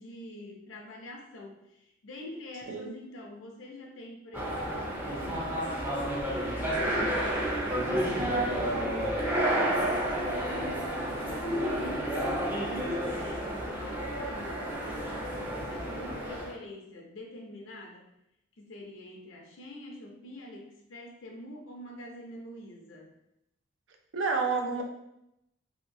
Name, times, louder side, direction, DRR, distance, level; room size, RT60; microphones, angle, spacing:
voice 1, 0.0-5.5 5.9-8.9 9.5-12.1 12.5-18.0 18.6-23.1, left 1 dB, 85° left, 0 dB, 0.6 m, -45 dB
sound 1, 4.3-16.5, right 1 dB, 10° right, 0.5 m, -30 dB
voice 2, 24.1-24.8, right 4 dB, 75° right, 3 dB, 0.5 m, -29 dB
2.8 x 2.6 x 2.6 m, 0.82 s
head